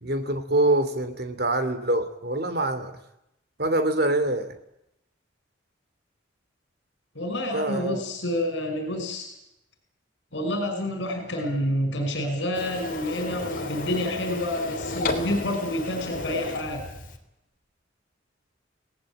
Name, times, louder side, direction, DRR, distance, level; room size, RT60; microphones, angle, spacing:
voice 1, 0.0-3.0 3.6-4.5 7.5-8.0, right 1 dB, 50° right, 9 dB, 2.8 m, -25 dB
voice 2, 7.2-9.3 10.3-16.9, left 1 dB, 65° left, 6 dB, 5.6 m, -28 dB
Printer, 12.5-17.2, left 2 dB, 45° left, 3.2 m, -33 dB
28.0 x 18.5 x 8.8 m, 0.84 s
head